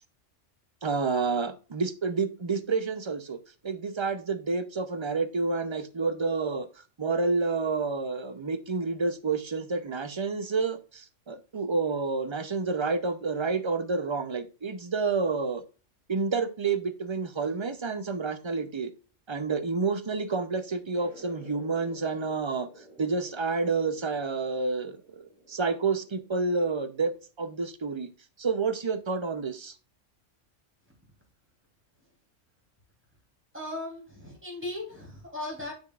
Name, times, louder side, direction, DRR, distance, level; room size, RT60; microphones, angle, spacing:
voice 1, 0.8-3.4 3.6-6.7 7.0-15.6 16.1-18.9 19.3-22.7 23.0-27.1 27.4-28.1 28.4-29.7, right 4 dB, 35° right, 0.5 m, -29 dB
sound 1, 20.9-27.1, equal, 90° left, 3.4 m, -53 dB
voice 2, 33.5-35.7, left 2 dB, 10° right, 3.0 m, -37 dB
6.9 x 6.6 x 2.4 m
omnidirectional pair, 1.3 m